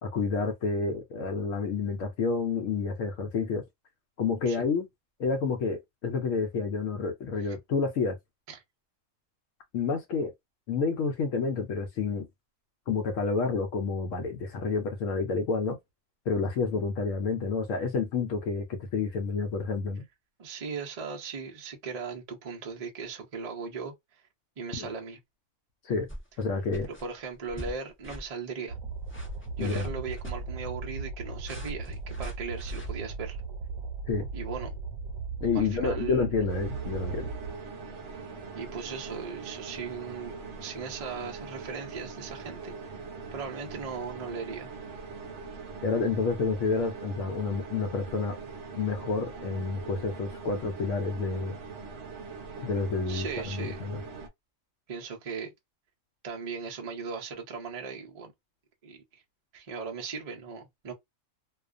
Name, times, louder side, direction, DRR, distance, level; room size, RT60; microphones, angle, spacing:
voice 1, 0.0-3.6 4.2-4.9 5.2-8.2 9.7-10.3 10.7-12.3 12.9-15.8 16.3-20.0 24.8-24.9 25.8-26.1 26.4-26.9 29.6-29.9 34.1-34.3 35.4-37.3 45.8-48.4 48.8-51.6 52.6-54.0, left 4 dB, 75° left, 0.9 m, -29 dB
voice 2, 20.4-23.9 24.6-25.2 26.8-28.8 29.6-33.4 34.3-34.8 35.5-36.3 38.5-42.9 43.3-44.7 53.1-53.9 54.9-55.5 56.2-58.3 58.8-59.2 59.5-60.9, right 5 dB, 45° right, 0.5 m, -38 dB
sound 1, 26.1-26.4 26.7-27.0 27.5-27.8 28.0-28.3 29.0-30.4 31.4-32.9, equal, 15° left, 0.5 m, -42 dB
sound 2, 28.7-37.5, right 4 dB, 80° right, 1.1 m, -37 dB
sound 3, 36.5-54.3, right 4 dB, 65° right, 0.9 m, -42 dB
2.4 x 2.2 x 2.4 m
omnidirectional pair, 1.4 m